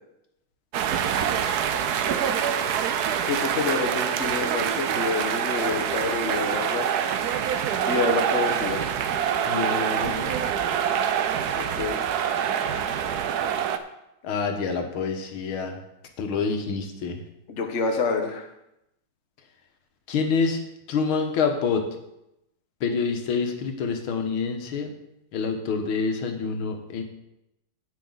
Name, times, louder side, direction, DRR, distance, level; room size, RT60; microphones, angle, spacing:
sound 1, 0.7-13.8, right 8 dB, 65° right, 1.0 m, -25 dB
voice 1, 3.2-6.9 7.8-8.9 11.5-12.0 17.5-18.5, left 4 dB, 45° left, 3 dB, 1.1 m, -28 dB
voice 2, 9.5-10.3 14.2-15.8 16.2-17.2 20.1-20.6 20.9-21.8 22.8-24.9 25.3-27.0, left 5 dB, 75° left, 4 dB, 2.0 m, -27 dB
16.5 x 6.1 x 4.0 m, 0.86 s
omnidirectional pair, 2.3 m